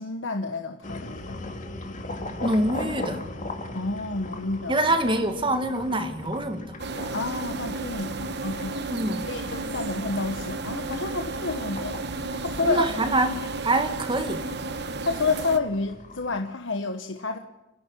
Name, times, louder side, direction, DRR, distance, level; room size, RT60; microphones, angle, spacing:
voice 1, 0.0-1.4 3.7-4.8 7.1-8.9 9.2-12.0 12.4-12.9 15.0-17.4, left 3 dB, 65° left, 1.2 m, -29 dB
sound 1, 0.8-16.4, left 2 dB, 40° left, 2.2 m, -40 dB
voice 2, 2.4-3.2 4.7-6.8 8.9-9.3 12.6-14.5, right 1 dB, 25° right, 2.0 m, -25 dB
sound 2, 6.8-15.6, right 3 dB, 55° right, 1.2 m, -33 dB
29.5 x 10.5 x 9.8 m
head